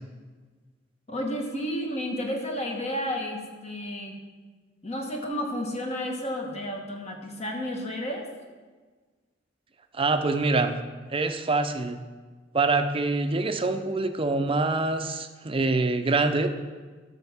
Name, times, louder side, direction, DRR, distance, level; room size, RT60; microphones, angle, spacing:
voice 1, 1.1-4.2 4.8-8.3, equal, 35° left, 2 dB, 1.3 m, -31 dB
voice 2, 9.9-10.8 11.1-12.0 12.5-16.5, right 3 dB, 30° right, 7 dB, 0.6 m, -25 dB
12.0 x 6.4 x 3.5 m, 1.4 s
head